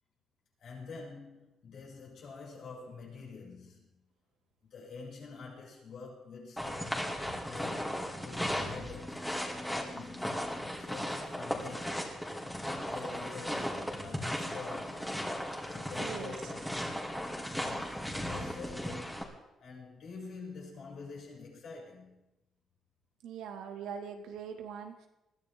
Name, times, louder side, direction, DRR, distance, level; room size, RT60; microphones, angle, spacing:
voice 1, 0.6-4.0 4.6-7.0 7.4-9.3 9.5-10.4 10.7-12.2 12.6-15.2 15.7-17.0 17.4-19.2 19.6-22.2, left 4 dB, 65° left, -4 dB, 6.8 m, -47 dB
sound 1, 6.6-19.2, equal, 5° left, 2.8 m, -36 dB
voice 2, 16.0-16.3 23.2-25.1, right 7 dB, 90° right, 4 dB, 2.0 m, -42 dB
21.0 x 14.0 x 3.7 m, 0.94 s
cardioid pair, 90°, 0 cm